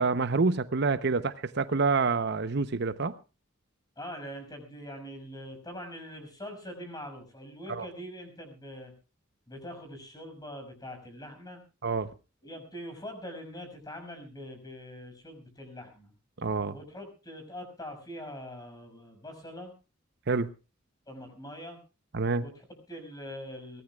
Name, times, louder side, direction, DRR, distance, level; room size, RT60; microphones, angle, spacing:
voice 1, 0.0-3.1 7.7-7.9 11.8-12.1 16.4-16.7 20.3-20.5 22.1-22.4, right 4 dB, 60° right, 13 dB, 0.8 m, -27 dB
voice 2, 4.0-8.9 9.5-11.6 12.4-16.1 16.7-19.7 21.1-21.8 22.4-23.8, equal, 20° left, 5 dB, 6.4 m, -43 dB
23.5 x 18.0 x 2.4 m, 0.32 s
head